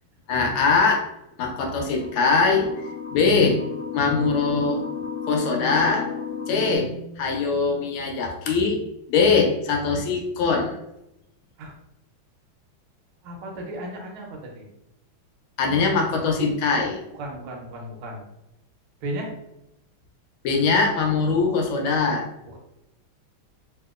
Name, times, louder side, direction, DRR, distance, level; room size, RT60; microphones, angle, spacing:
voice 1, 0.3-1.1 1.4-2.7 3.1-3.6 3.9-4.9 5.3-6.1 6.5-8.8 9.1-10.8 15.6-17.0 20.4-22.3, left 4 dB, 80° left, 1 dB, 1.4 m, -22 dB
sound 1, 1.7-6.8, left 6 dB, 60° left, 1.1 m, -33 dB
voice 2, 13.2-14.7 17.1-18.2 19.0-19.3 22.5-22.6, right 1 dB, 85° right, 0 dB, 1.6 m, -35 dB
3.4 x 2.8 x 2.4 m, 0.87 s
omnidirectional pair, 2.3 m